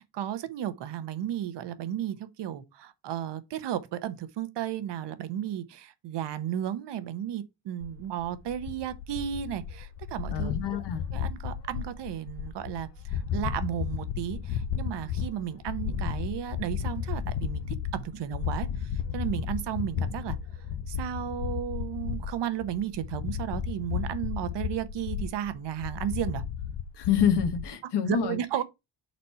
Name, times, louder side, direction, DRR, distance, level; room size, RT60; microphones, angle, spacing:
voice 1, 0.1-10.6 11.1-20.4 20.9-26.4 28.1-28.6, right 10 dB, 70° right, 0.8 m, -34 dB
sound 1, 7.8-27.6, left 8 dB, 85° left, 0.7 m, -34 dB
voice 2, 10.3-11.0 27.0-28.4, left 8 dB, 70° left, 1.2 m, -27 dB
4.3 x 4.2 x 5.4 m
wide cardioid pair, 180°, 43 cm